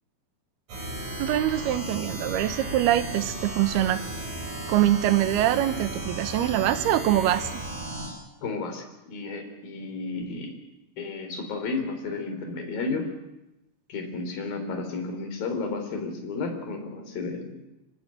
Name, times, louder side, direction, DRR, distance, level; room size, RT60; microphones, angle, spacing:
sound 1, 0.7-8.1, right 1 dB, 50° right, 9.7 m, -35 dB
voice 1, 1.2-4.0 4.7-7.6, right 13 dB, 70° right, 11 dB, 2.9 m, -24 dB
voice 2, 8.4-10.5 11.0-13.1 13.9-17.5, left 3 dB, 50° left, 6 dB, 5.4 m, -32 dB
26.0 x 19.5 x 9.1 m, 0.95 s
omnidirectional pair, 5.3 m